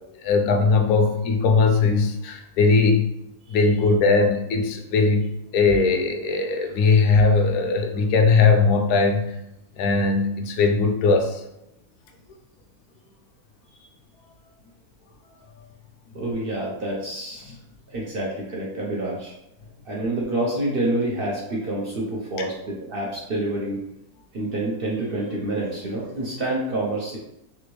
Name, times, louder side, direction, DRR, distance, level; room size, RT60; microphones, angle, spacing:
voice 1, 0.2-3.1 3.5-5.3 5.5-9.3 9.8-11.4, left 4 dB, 90° left, 4 dB, 1.1 m, -19 dB
voice 2, 16.1-17.6 17.9-19.3 19.8-23.8 24.3-27.2, right 1 dB, 55° right, -4 dB, 0.6 m, -27 dB
3.4 x 2.6 x 3.0 m, 0.84 s
omnidirectional pair, 1.6 m